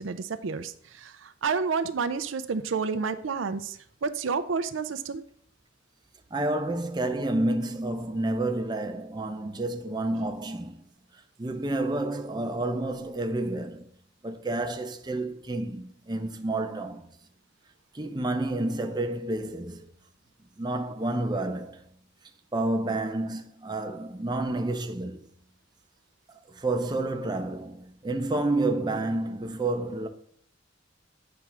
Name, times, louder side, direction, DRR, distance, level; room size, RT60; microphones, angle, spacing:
voice 1, 0.0-5.2, right 5 dB, 80° right, 0.5 m, -30 dB
voice 2, 6.3-10.9 11.1-13.9 14.2-17.1 17.9-19.9 20.6-21.8 22.5-25.2 26.5-30.1, right 2 dB, 20° right, 0.7 m, -30 dB
8.5 x 3.4 x 6.0 m
head